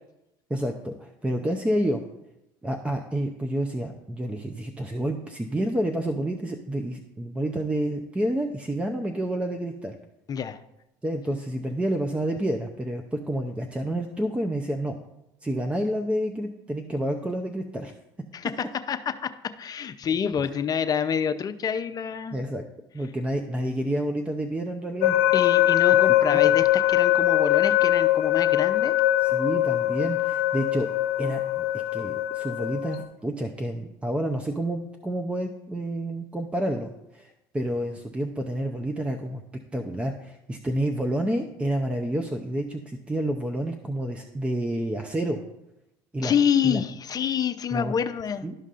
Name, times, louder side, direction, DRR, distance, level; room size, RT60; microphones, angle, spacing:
voice 1, 0.5-2.0 2.6-10.0 11.0-15.0 15.4-17.9 22.3-22.6 22.9-25.2 26.3-26.5 29.2-30.9 31.2-31.6 31.9-39.4 39.7-45.4 46.1-46.3 46.6-46.8 47.7-48.0 48.4-48.5, right 1 dB, 10° right, 4 dB, 0.6 m, -29 dB
voice 2, 10.3-10.6 18.3-19.3 19.6-22.4 25.3-28.9 46.2-48.4, left 7 dB, 35° left, 9 dB, 0.6 m, -27 dB
sound 1, 25.0-33.0, left 13 dB, 80° left, 0.6 m, -22 dB
12.5 x 5.2 x 2.5 m, 0.88 s
supercardioid pair, 95°, 11 cm